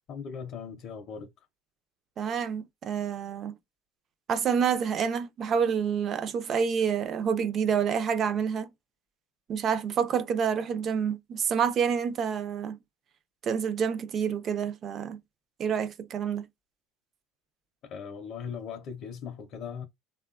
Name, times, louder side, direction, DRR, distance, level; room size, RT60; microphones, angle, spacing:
voice 1, 0.1-1.3 17.8-19.9, left 6 dB, 40° left, 0.5 m, -39 dB
voice 2, 2.2-3.6 4.3-8.7 9.5-12.8 13.4-15.2 15.6-16.5, right 7 dB, 30° right, 0.3 m, -28 dB
3.3 x 2.1 x 2.3 m
cardioid pair, 160°, 0 cm